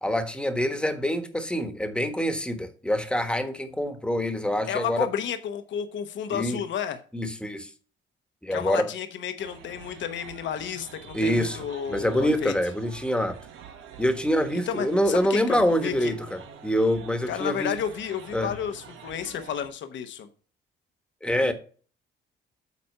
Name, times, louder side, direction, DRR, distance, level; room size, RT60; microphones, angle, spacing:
voice 1, 0.0-5.1 6.3-6.6 7.1-7.7 8.4-8.9 11.1-11.6 11.9-13.4 14.0-17.7 18.3-18.5 21.2-21.5, equal, 5° left, 1.3 m, -25 dB
voice 2, 4.7-7.0 8.5-12.5 14.7-16.1 17.3-20.3 21.4-21.5, left 9 dB, 70° left, 1.0 m, -32 dB
sound 1, 9.4-19.7, right 8 dB, 90° right, 1.2 m, -46 dB
8.3 x 4.2 x 5.4 m
cardioid pair, 90°, 20 cm